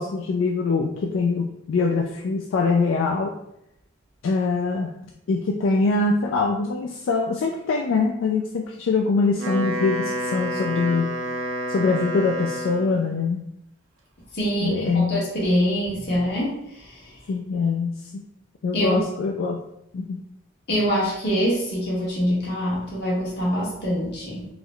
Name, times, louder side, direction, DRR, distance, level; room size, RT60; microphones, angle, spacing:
voice 1, 0.0-3.3 4.2-4.9 5.3-11.1 11.7-13.4 14.6-15.2 17.3-18.0 18.6-19.6 19.9-20.2, left 4 dB, 75° left, 1 dB, 0.3 m, -23 dB
Wind instrument woodwind instrument, 9.2-13.1, equal, 85° right, 0.5 m, -29 dB
voice 2, 14.3-17.0 18.7-19.0 20.7-24.5, equal, 55° left, -5 dB, 1.2 m, -24 dB
3.7 x 2.0 x 3.3 m, 0.79 s
head